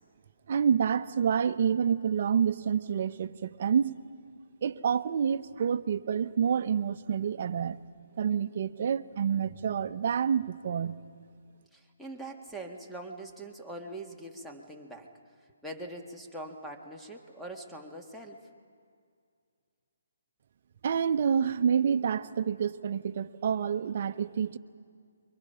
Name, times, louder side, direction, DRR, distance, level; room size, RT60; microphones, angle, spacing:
voice 1, 0.5-4.0 4.6-7.8 8.2-11.0 20.8-24.6, right 7 dB, 50° right, 11 dB, 0.9 m, -28 dB
voice 2, 11.7-15.1 15.6-18.5, right 1 dB, ahead, -3 dB, 1.8 m, -43 dB
29.5 x 23.5 x 5.8 m, 2.3 s
hypercardioid pair, 150°, 0 cm